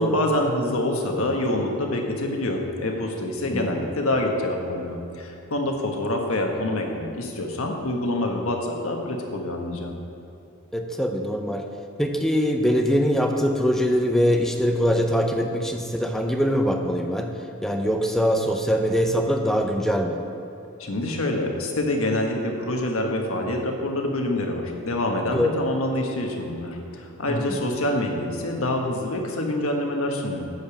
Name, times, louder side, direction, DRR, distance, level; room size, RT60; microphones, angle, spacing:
voice 1, 0.0-9.9 20.8-30.4, left 1 dB, 75° left, 2 dB, 1.3 m, -26 dB
voice 2, 3.5-3.8 10.7-11.6 12.0-17.3 17.6-20.2 25.3-25.5 27.3-27.6, equal, ahead, 3 dB, 0.6 m, -23 dB
10.5 x 5.2 x 7.2 m, 2.9 s
head